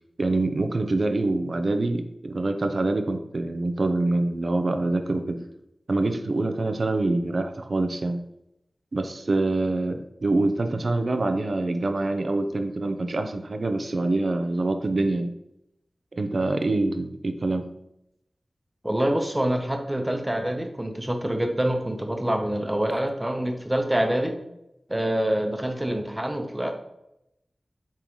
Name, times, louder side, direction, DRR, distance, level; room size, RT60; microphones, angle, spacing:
voice 1, 0.2-5.4 5.9-8.2 8.9-15.3 16.1-17.6, right 2 dB, 65° right, 7 dB, 0.7 m, -25 dB
voice 2, 18.8-24.3 24.9-26.7, right 1 dB, 15° right, 4 dB, 1.0 m, -26 dB
8.5 x 3.8 x 3.1 m, 0.83 s
wide cardioid pair, 65°, 0 cm